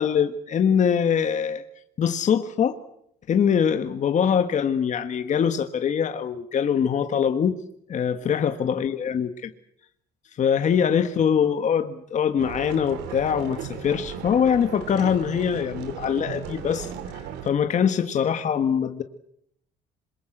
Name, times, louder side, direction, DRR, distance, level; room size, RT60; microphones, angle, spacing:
voice 1, 0.0-1.6 2.0-2.8 3.3-7.5 7.9-9.5 10.4-16.9 17.4-19.0, left 7 dB, 45° left, 8 dB, 1.5 m, -23 dB
sound 1, 12.4-17.5, right 8 dB, 90° right, 3.1 m, -36 dB
26.5 x 22.5 x 7.9 m, 0.72 s
cardioid pair, 110°, 17 cm